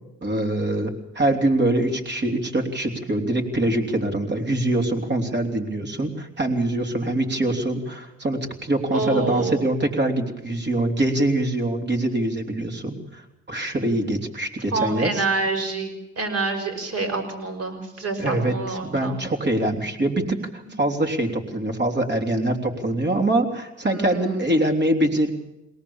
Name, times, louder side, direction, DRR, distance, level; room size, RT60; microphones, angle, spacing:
voice 1, 0.2-15.2 18.2-25.3, right 1 dB, 35° right, 5 dB, 3.3 m, -24 dB
voice 2, 8.9-9.6 14.7-19.2 23.9-24.4, right 3 dB, 55° right, 4 dB, 5.3 m, -27 dB
23.0 x 18.5 x 7.1 m, 0.99 s
cardioid pair, 90°, 30 cm